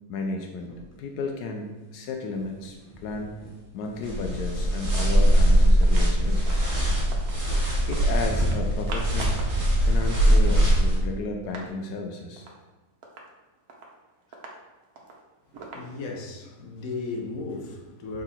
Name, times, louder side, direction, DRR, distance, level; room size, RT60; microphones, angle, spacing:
voice 1, 0.1-0.7 1.0-3.4 3.7-6.7 7.9-9.4 9.8-12.5, left 3 dB, 85° left, 3 dB, 1.2 m, -33 dB
sound 1, 0.6-1.3 1.6-5.7 7.3-7.9 8.2-9.0, left 3 dB, 15° left, 0.7 m, -39 dB
sound 2, 4.0-11.0, right 1 dB, 35° right, 1.8 m, -21 dB
sound 3, 5.8-7.4 7.8-8.1 8.4-9.6 9.9-10.0 10.2-11.7 12.0-12.1 12.4-12.6 13.0-16.3, right 3 dB, 70° right, 1.4 m, -43 dB
voice 2, 15.7-18.2, left 3 dB, 65° left, 1 dB, 1.3 m, -35 dB
6.0 x 3.9 x 4.3 m, 1.1 s
omnidirectional pair, 1.7 m